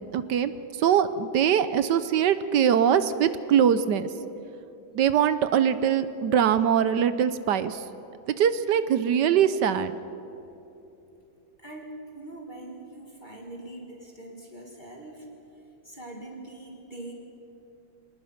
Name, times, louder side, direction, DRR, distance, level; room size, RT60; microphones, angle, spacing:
voice 1, 0.1-4.1 4.9-7.8 8.3-9.9, right 8 dB, 70° right, 13 dB, 1.2 m, -22 dB
voice 2, 11.6-15.3 15.8-17.1, right 1 dB, 25° left, 0 dB, 2.3 m, -42 dB
24.5 x 19.5 x 5.8 m, 2.8 s
omnidirectional pair, 2.2 m